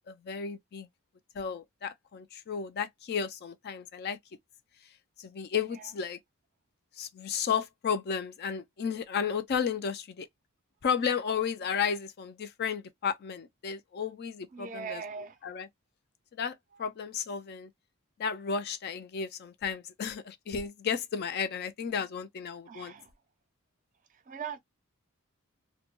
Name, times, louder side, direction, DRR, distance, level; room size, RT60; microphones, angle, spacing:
voice 1, 0.1-0.9 1.3-4.2 5.2-6.2 7.0-10.3 10.8-15.0 15.4-15.7 16.3-17.7 18.2-22.9, left 7 dB, 45° left, 0.3 m, -33 dB
voice 2, 14.5-15.4 16.7-16.9 22.7-23.1 24.1-24.6, right 6 dB, 35° right, 0.4 m, -41 dB
2.1 x 2.1 x 2.9 m
head